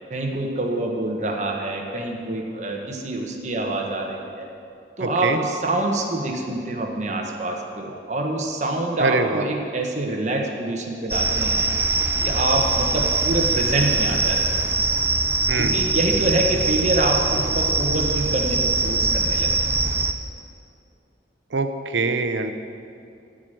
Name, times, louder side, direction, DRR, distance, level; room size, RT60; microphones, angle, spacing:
voice 1, 0.1-4.5 5.0-11.7 12.2-14.6 15.6-19.5, right 2 dB, 40° right, 1 dB, 1.2 m, -26 dB
voice 2, 5.0-5.4 9.0-9.4 15.5-15.8 21.5-22.5, right 3 dB, 90° right, 8 dB, 0.7 m, -24 dB
sound 1, 11.1-20.1, right 3 dB, 10° right, 0.5 m, -22 dB
14.0 x 5.1 x 7.6 m, 2.5 s
head